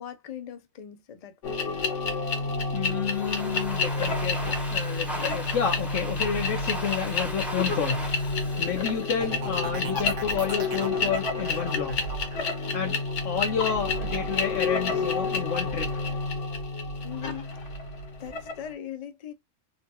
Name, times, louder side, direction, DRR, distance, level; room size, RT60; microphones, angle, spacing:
voice 1, 0.0-1.9 17.0-17.5 18.2-19.3, left 10 dB, 55° left, 0.4 m, -40 dB
sound 1, 1.4-18.7, left 3 dB, 70° left, 1.2 m, -29 dB
voice 2, 2.7-8.1 8.6-12.0 12.7-13.0 13.2-15.9, left 8 dB, 90° left, 1.0 m, -30 dB
Domestic sounds home sounds, 2.9-9.8, right 1 dB, ahead, 0.6 m, -38 dB
sound 2, 9.2-14.8 15.2-15.7, right 4 dB, 80° right, 1.2 m, -40 dB
3.7 x 2.2 x 2.7 m
omnidirectional pair, 1.3 m